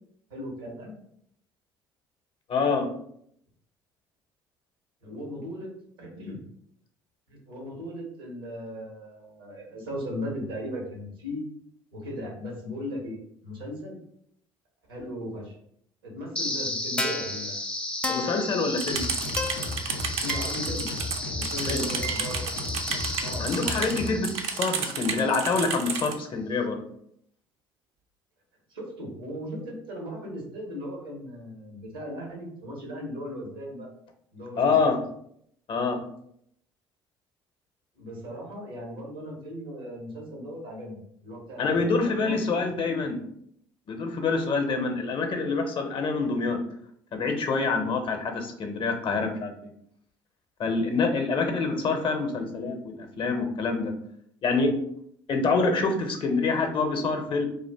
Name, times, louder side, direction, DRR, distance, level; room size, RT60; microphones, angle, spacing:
voice 1, 0.3-1.0 5.0-5.7 6.0-6.4 7.3-11.4 11.9-13.2 13.4-14.0 14.9-15.6 16.0-17.6 20.2-20.9 21.3-22.8 23.2-23.5 28.7-33.9 34.3-34.9 37.9-42.6 42.9-43.0, equal, 90° right, -2 dB, 1.1 m, -37 dB
voice 2, 2.5-2.9 18.1-19.0 21.7-21.8 23.4-26.8 34.6-35.0 35.7-36.0 41.6-43.2 43.9-46.6 47.1-49.7 50.6-53.9 54.4-54.7 55.3-57.4, left 4 dB, 45° left, 5 dB, 0.7 m, -26 dB
sound 1, 16.4-25.4, left 2 dB, 10° left, 0.4 m, -33 dB
sound 2, 18.8-26.1, right 6 dB, 60° right, 0.5 m, -32 dB
sound 3, 18.9-24.2, left 2 dB, 80° left, 0.5 m, -35 dB
2.5 x 2.4 x 3.4 m, 0.70 s
hypercardioid pair, 55°, 12 cm